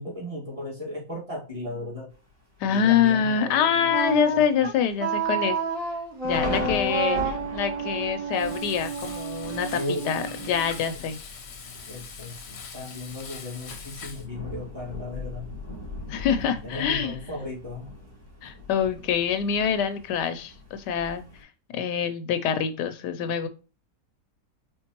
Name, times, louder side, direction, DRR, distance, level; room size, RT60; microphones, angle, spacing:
voice 1, 0.0-2.1 2.7-4.4 9.7-10.3 11.9-15.5 16.6-17.9, left 2 dB, 20° right, -4 dB, 1.7 m, -36 dB
Thunder, 2.1-2.7 3.2-3.3 3.6-4.0 4.4-4.5 5.2-21.4, left 1 dB, 75° right, 3.1 m, -40 dB
voice 2, 2.6-5.6 6.2-11.2 16.1-17.1 18.4-21.2 21.7-23.5, left 8 dB, 80° left, 9 dB, 1.1 m, -25 dB
Wind instrument woodwind instrument, 3.9-10.8, right 4 dB, 50° right, 1.4 m, -30 dB
Frying (food), 8.3-14.3, left 5 dB, 50° left, 0.9 m, -42 dB
4.4 x 4.0 x 2.9 m, 0.34 s
omnidirectional pair, 1.8 m